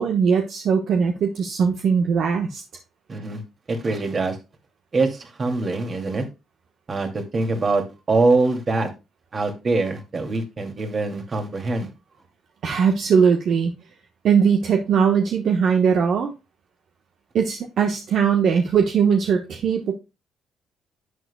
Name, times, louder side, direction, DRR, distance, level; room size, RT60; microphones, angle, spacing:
voice 1, 0.0-2.6 12.6-13.7 14.2-16.3 17.3-19.9, right 6 dB, 65° right, 1.1 m, -20 dB
voice 2, 3.1-3.4 3.7-4.4 4.9-6.2 6.9-8.9 9.3-11.9, right 3 dB, 40° right, 2.4 m, -23 dB
11.0 x 8.2 x 2.2 m
supercardioid pair, 70°, 0 cm